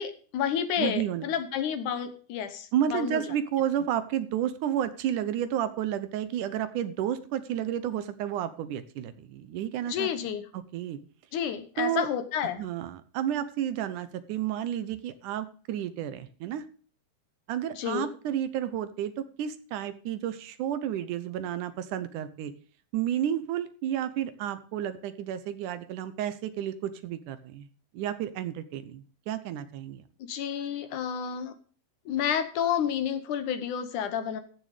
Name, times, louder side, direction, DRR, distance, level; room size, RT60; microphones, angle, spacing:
voice 1, 0.0-3.2 9.9-10.4 11.3-12.6 17.7-18.1 30.2-31.5 32.1-34.4, left 8 dB, 70° left, 10 dB, 2.1 m, -30 dB
voice 2, 0.8-1.3 2.7-10.1 10.5-11.0 11.8-12.1 12.6-16.6 17.5-22.5 22.9-27.7 27.9-30.0, right 10 dB, 75° right, 12 dB, 2.0 m, -31 dB
15.5 x 7.1 x 5.0 m, 0.42 s
omnidirectional pair, 4.5 m